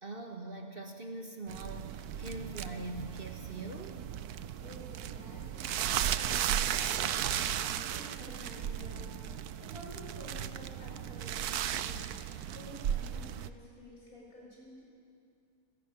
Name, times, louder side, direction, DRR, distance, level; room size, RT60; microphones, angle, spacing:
voice 1, 0.0-4.0, right 2 dB, 35° right, 3 dB, 1.6 m, -43 dB
sound 1, 1.5-13.5, right 10 dB, 75° right, 1.2 m, -35 dB
voice 2, 4.6-12.1 12.5-14.8, left 1 dB, 65° left, -4 dB, 7.6 m, -51 dB
29.0 x 13.0 x 9.4 m, 2.4 s
omnidirectional pair, 1.7 m